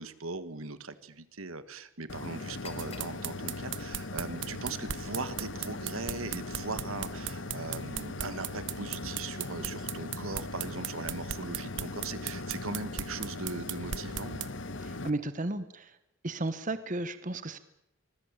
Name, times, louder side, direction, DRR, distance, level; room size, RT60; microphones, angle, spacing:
voice 1, 0.0-14.5, right 3 dB, 80° right, 13 dB, 1.6 m, -39 dB
sound 1, 2.1-15.1, left 2 dB, 60° left, 1.4 m, -39 dB
sound 2, 2.4-10.3, left 4 dB, 30° left, 3.1 m, -57 dB
sound 3, 2.8-14.5, right 10 dB, 60° right, 1.1 m, -37 dB
voice 2, 14.8-15.9 16.2-17.6, right 2 dB, 35° right, 12 dB, 1.2 m, -34 dB
25.0 x 20.5 x 8.9 m, 0.87 s
head